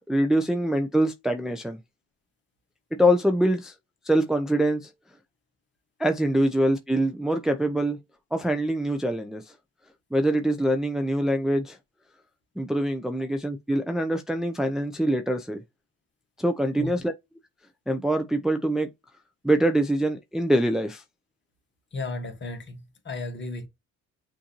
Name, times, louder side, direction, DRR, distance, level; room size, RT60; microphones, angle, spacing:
voice 1, 0.1-1.8 3.0-3.7 4.1-4.9 6.0-8.0 8.3-9.4 10.1-11.8 12.6-15.6 16.4-17.1 17.9-18.9 19.4-21.0, right 1 dB, ahead, 0.5 m, -24 dB
voice 2, 21.9-22.8 23.0-23.7, left 3 dB, 40° left, 1.5 m, -33 dB
6.2 x 2.7 x 2.9 m
cardioid pair, 90°, 30 cm